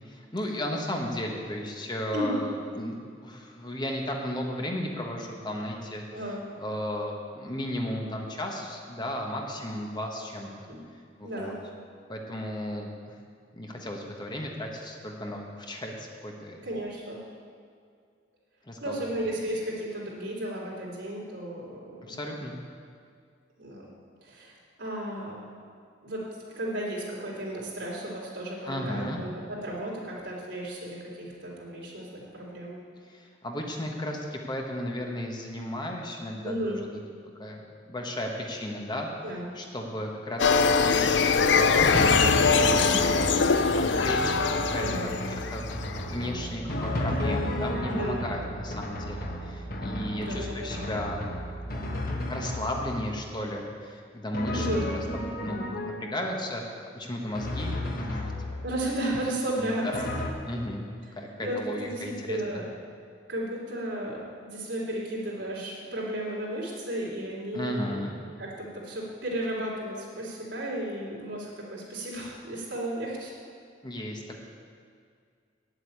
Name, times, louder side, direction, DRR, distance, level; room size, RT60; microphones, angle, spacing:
voice 1, 0.0-6.0 6.6-10.5 11.2-11.5 12.1-13.1 13.5-16.6 18.6-19.1 22.0-22.5 28.7-29.2 33.1-36.9 37.4-37.6 37.9-39.1 39.5-42.8 43.8-51.3 51.7-51.9 52.3-54.7 55.1-56.6 56.9-58.6 59.5-60.1 60.5-60.9 61.2-62.6 67.5-68.1 73.8-74.4, left 1 dB, 25° left, 0 dB, 1.2 m, -34 dB
voice 2, 6.1-6.4 10.7-10.8 11.2-11.6 16.6-17.3 18.8-22.2 23.6-23.8 24.2-25.4 26.0-32.8 36.4-36.8 39.2-39.5 44.7-45.1 47.9-48.2 50.2-50.9 54.5-54.9 58.6-59.9 61.4-62.6 63.3-64.2 64.4-68.0 68.4-73.3, right 1 dB, 75° right, -5 dB, 3.6 m, -34 dB
sound 1, 40.4-46.0, left 5 dB, 75° left, 0.5 m, -23 dB
Drum, 41.7-53.1 54.3-56.3 57.3-58.8 59.9-60.3, left 1 dB, 55° left, 1.3 m, -32 dB
9.0 x 8.0 x 8.7 m, 2.2 s
head